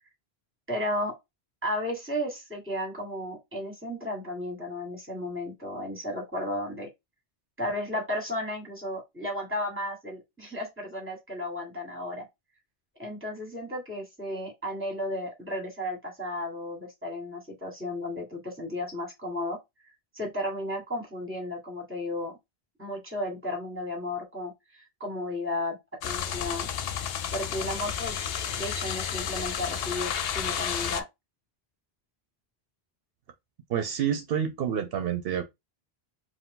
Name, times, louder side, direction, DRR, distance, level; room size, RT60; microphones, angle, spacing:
voice 1, 0.7-1.2 1.6-6.9 7.6-12.2 13.0-19.6 20.1-22.4 22.8-25.8 26.0-26.7 27.3-28.2 28.5-31.1, left 1 dB, 10° right, 1.8 m, -34 dB
sound 1, 26.0-31.0, left 8 dB, 70° left, 0.8 m, -31 dB
voice 2, 33.7-35.4, right 8 dB, 70° right, 0.8 m, -28 dB
4.6 x 2.2 x 3.7 m
omnidirectional pair, 1.0 m